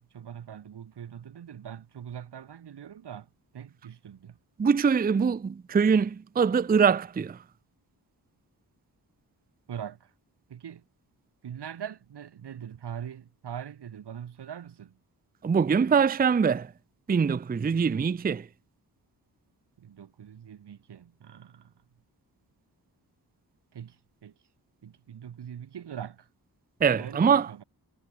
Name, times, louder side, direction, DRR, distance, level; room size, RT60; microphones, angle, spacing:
voice 1, 0.0-4.4 9.7-10.1 10.5-10.8 11.4-15.0 19.8-21.7 23.7-24.3 24.8-26.3 27.0-27.6, right 9 dB, 90° right, 2.4 m, -42 dB
voice 2, 4.6-7.4 15.4-16.7 17.1-18.5 26.8-27.5, right 6 dB, 25° right, 0.5 m, -23 dB
cardioid pair, 80°, 39 cm